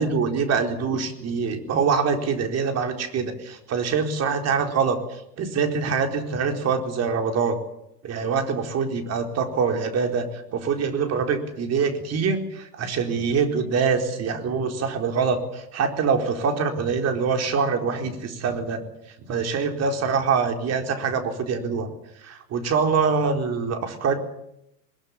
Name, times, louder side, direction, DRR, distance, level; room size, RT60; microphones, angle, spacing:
voice 1, 0.0-7.6 8.0-18.8 19.3-21.9 22.2-24.2, right 5 dB, 30° right, 5 dB, 4.3 m, -24 dB
21.5 x 21.5 x 8.6 m, 0.81 s
hypercardioid pair, 100°, 47 cm